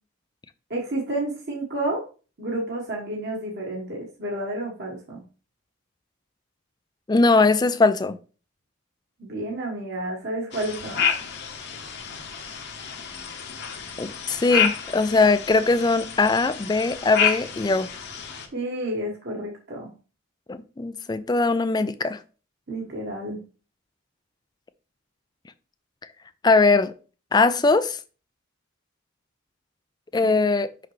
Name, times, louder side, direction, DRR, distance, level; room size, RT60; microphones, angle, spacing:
voice 1, 0.7-2.0 2.4-5.2 9.2-11.1 18.5-19.9 22.7-23.4 30.2-30.3, right 1 dB, 50° right, 1.3 m, -30 dB
voice 2, 7.1-8.2 14.0-17.9 20.5-22.2 26.4-26.9 27.3-28.0 30.1-30.7, left 3 dB, 20° left, 0.3 m, -20 dB
sound 1, 10.5-18.5, left 7 dB, 50° left, 1.0 m, -29 dB
5.9 x 5.8 x 3.1 m
head